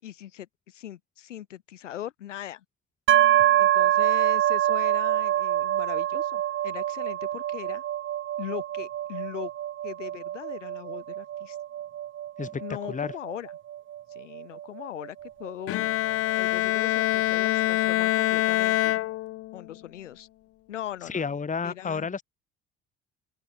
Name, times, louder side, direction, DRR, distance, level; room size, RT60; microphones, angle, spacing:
voice 1, 0.0-2.6 3.6-7.8 8.4-9.5 9.8-11.6 12.6-13.5 14.1-15.9 16.3-19.0 19.5-20.3 20.7-21.4 21.6-22.1, left 12 dB, 80° left, 5.7 m, -40 dB
sound 1, 3.1-16.8, right 12 dB, 35° right, 0.6 m, -26 dB
Bowed string instrument, 15.7-19.7, left 16 dB, 40° left, 0.5 m, -25 dB
voice 2, 21.1-22.2, left 5 dB, 20° left, 1.4 m, -30 dB
open air
figure-of-eight pair, 55°, 36 cm